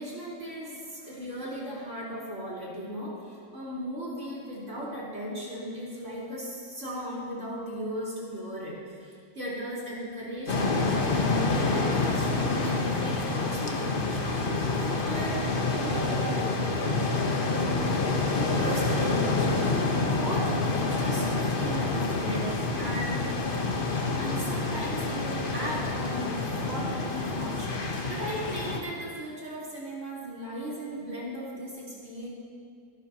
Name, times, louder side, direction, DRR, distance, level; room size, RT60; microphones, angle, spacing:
voice 1, 0.0-16.4 17.4-17.9 18.2-22.5 22.8-23.3 24.2-27.8 28.1-32.3, equal, 40° right, -7 dB, 4.3 m, -37 dB
sound 1, 10.5-28.8, left 3 dB, 35° left, 1.0 m, -28 dB
27.0 x 11.5 x 2.9 m, 2.3 s
omnidirectional pair, 2.0 m